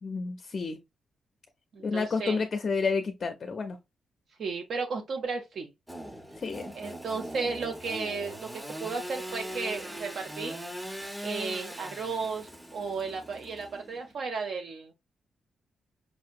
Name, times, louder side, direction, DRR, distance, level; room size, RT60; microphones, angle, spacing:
voice 1, 0.0-0.8 1.8-3.8 6.4-6.6, left 4 dB, 40° left, 0.4 m, -30 dB
voice 2, 1.7-2.4 4.4-5.7 6.8-10.6 11.2-14.9, right 4 dB, 55° right, 0.6 m, -34 dB
Engine / Sawing, 5.9-14.1, equal, 5° right, 0.6 m, -40 dB
5.3 x 2.8 x 2.5 m
cardioid pair, 145°, 0 cm